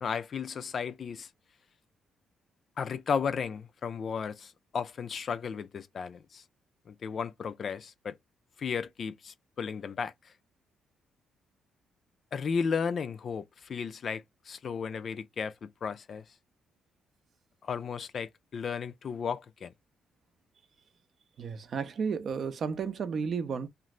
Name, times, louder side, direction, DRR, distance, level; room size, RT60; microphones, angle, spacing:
voice 1, 0.0-1.3 2.8-6.4 6.9-8.2 8.6-10.3 12.3-16.2 17.6-19.7, left 6 dB, 55° left, 0.3 m, -34 dB
voice 2, 21.4-23.7, right 6 dB, 55° right, 0.5 m, -33 dB
2.5 x 2.5 x 3.0 m
cardioid pair, 80°, 0 cm